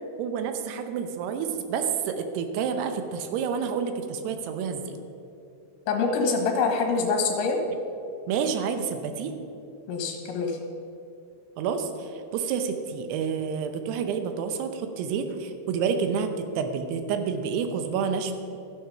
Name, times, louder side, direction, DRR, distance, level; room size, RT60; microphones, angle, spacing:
voice 1, 0.2-5.0 8.3-9.3 11.6-18.3, right 6 dB, 85° right, 7 dB, 2.9 m, -29 dB
voice 2, 5.9-7.6 9.9-10.6, left 4 dB, 75° left, 2 dB, 3.2 m, -25 dB
13.5 x 7.8 x 5.6 m, 2.7 s
omnidirectional pair, 4.7 m